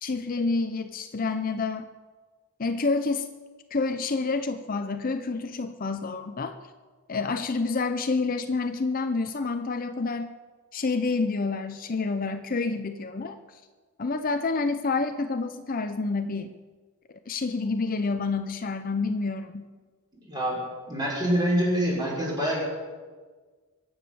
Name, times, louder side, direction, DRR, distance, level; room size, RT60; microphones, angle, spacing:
voice 1, 0.0-1.9 2.6-3.3 3.7-6.6 7.1-10.3 10.7-13.6 14.0-16.6 17.3-19.7, left 3 dB, 40° left, 8 dB, 0.6 m, -28 dB
voice 2, 20.2-20.6 20.9-22.6, equal, 20° right, -4 dB, 5.7 m, -25 dB
23.5 x 8.9 x 6.9 m, 1.4 s
head